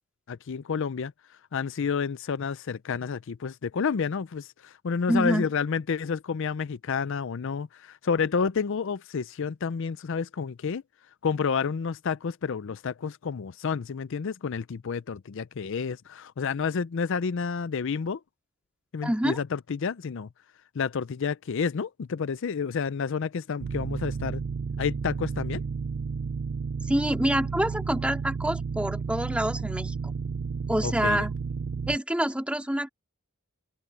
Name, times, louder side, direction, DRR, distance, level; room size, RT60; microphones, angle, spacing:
voice 1, 0.3-1.1 1.5-10.8 11.2-18.2 18.9-20.3 20.8-24.4 24.8-25.6 30.8-31.2, left 6 dB, 60° left, 0.5 m, -30 dB
voice 2, 5.1-5.5 19.0-19.4 26.9-29.9 30.7-31.3 31.9-32.9, right 1 dB, 5° right, 2.3 m, -26 dB
sound 1, 23.6-32.0, right 5 dB, 55° right, 0.4 m, -32 dB
head